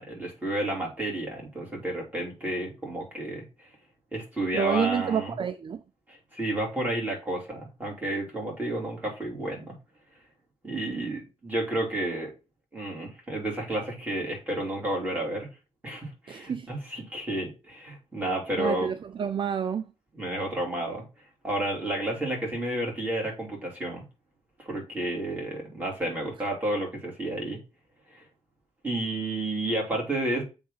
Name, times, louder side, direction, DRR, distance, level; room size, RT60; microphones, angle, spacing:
voice 1, 0.0-3.7 4.1-5.4 6.1-9.7 10.6-12.3 12.7-15.5 15.8-18.9 20.1-21.0 21.4-24.0 24.6-27.6 28.1-28.2 28.8-30.4, right 1 dB, 15° right, 3.1 m, -31 dB
voice 2, 4.5-5.8 16.3-16.7 18.6-19.9, right 7 dB, 45° right, 0.4 m, -29 dB
7.9 x 3.5 x 5.6 m
wide cardioid pair, 165°, 12 cm